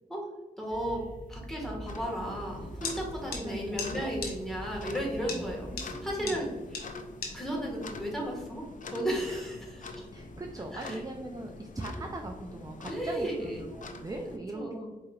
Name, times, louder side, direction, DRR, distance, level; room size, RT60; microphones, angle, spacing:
voice 1, 0.6-1.0 1.3-6.9 7.3-10.1 10.7-11.0 12.9-13.7 14.5-14.9, equal, ahead, -2 dB, 1.5 m, -34 dB
sound 1, 0.7-6.2, right 1 dB, 60° right, 1.0 m, -45 dB
sound 2, 1.9-14.4, left 3 dB, 55° left, 0.5 m, -45 dB
sound 3, 2.8-3.0 3.3-3.4 3.8-3.9 4.2-4.3 5.3-5.4 5.8-5.9 6.3-6.4 6.7-6.8 7.2-7.3, left 4 dB, 80° left, 0.8 m, -34 dB
voice 2, 3.4-4.1 4.9-6.5 9.3-9.4 10.1-14.8, right 2 dB, 25° right, 3 dB, 0.4 m, -41 dB
4.6 x 2.9 x 2.3 m, 1.2 s
cardioid pair, 55°, 16 cm